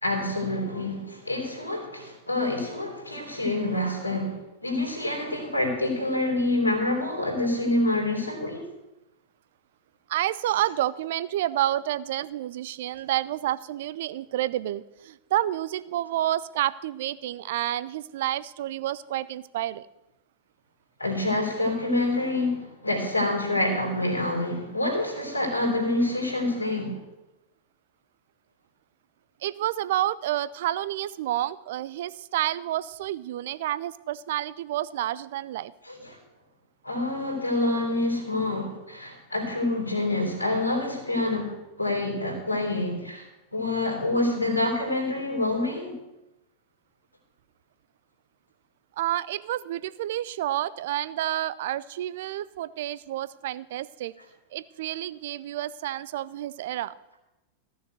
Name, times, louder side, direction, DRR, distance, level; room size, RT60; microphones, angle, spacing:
voice 1, 0.0-8.7 21.0-27.0 35.8-36.2 36.8-43.3 43.5-46.0, left 2 dB, 85° left, 1 dB, 3.5 m, -27 dB
voice 2, 10.1-19.9 29.4-35.7 49.0-54.1 54.5-56.9, right 13 dB, 55° right, 17 dB, 0.5 m, -29 dB
14.5 x 6.7 x 7.7 m, 0.95 s
figure-of-eight pair, 90°, 0 cm